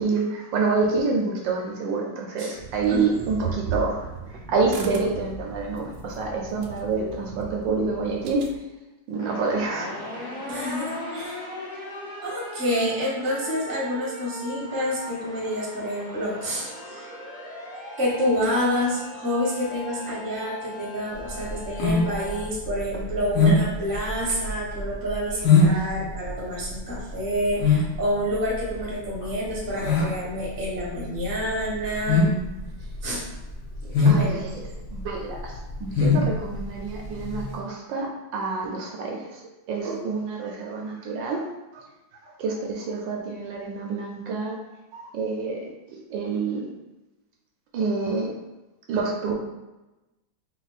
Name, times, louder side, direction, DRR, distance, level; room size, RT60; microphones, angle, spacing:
voice 1, 0.0-4.0 4.3-8.4 9.1-9.9 11.1-11.2 11.4-11.6 25.7-25.9 33.8-39.4 39.7-41.8 42.1-44.6 44.9-45.7 46.1-46.7 47.7-48.3 48.9-49.3, right 4 dB, 75° right, 0 dB, 1.3 m, -28 dB
sound 1, 2.6-8.6, right 4 dB, 90° right, 1.4 m, -36 dB
sound 2, 9.1-22.5, left 1 dB, 30° left, 1.0 m, -38 dB
voice 2, 10.5-11.4 12.2-17.1 18.0-32.3 33.0-33.3 34.0-34.4, equal, 15° right, -5 dB, 0.7 m, -28 dB
sound 3, 21.2-37.5, left 3 dB, 60° left, 1.3 m, -23 dB
4.3 x 2.2 x 4.1 m, 1.0 s
omnidirectional pair, 2.2 m